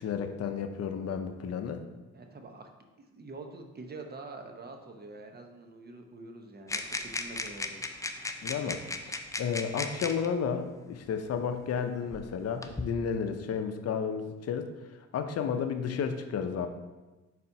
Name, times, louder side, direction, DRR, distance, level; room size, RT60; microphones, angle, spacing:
voice 1, 0.0-1.8 8.4-8.8 9.4-14.7 15.1-16.7, left 6 dB, 55° left, 7 dB, 0.6 m, -32 dB
voice 2, 2.1-2.7 3.0-8.0, right 3 dB, 30° right, 4 dB, 0.8 m, -46 dB
sound 1, 6.7-10.3 11.3-11.4 12.1-12.9, left 2 dB, 10° left, 0.4 m, -36 dB
4.3 x 4.1 x 5.3 m, 1.2 s
cardioid pair, 90°, 30 cm